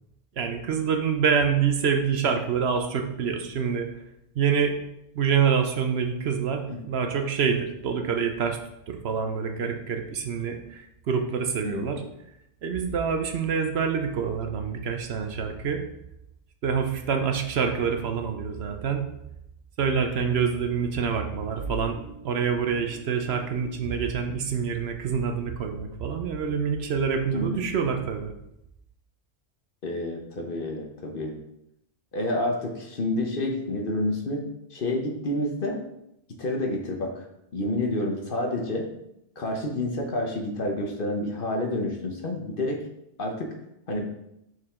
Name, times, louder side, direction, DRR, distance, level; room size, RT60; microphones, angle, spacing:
voice 1, 0.4-3.9 4.4-4.7 5.1-8.6 8.9-12.0 12.6-15.8 16.6-19.1 19.8-28.3, right 6 dB, 65° right, 5 dB, 0.9 m, -26 dB
voice 2, 29.8-31.3 32.1-34.4 34.7-35.8 36.4-37.2 37.5-38.9 39.4-42.8 43.2-43.5 43.9-44.1, left 1 dB, 50° left, 2 dB, 1.1 m, -29 dB
6.3 x 4.8 x 3.6 m, 0.81 s
omnidirectional pair, 1.2 m